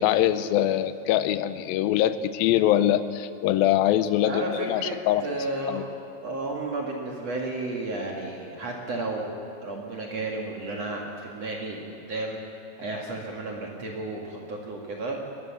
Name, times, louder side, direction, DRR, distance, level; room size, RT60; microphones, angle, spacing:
voice 1, 0.0-5.8, left 12 dB, 75° left, 13 dB, 2.4 m, -23 dB
voice 2, 4.2-5.8 6.2-9.3 9.6-12.4 12.8-15.2, right 2 dB, 50° right, -1 dB, 2.6 m, -32 dB
21.0 x 21.0 x 7.4 m, 2.7 s
omnidirectional pair, 4.5 m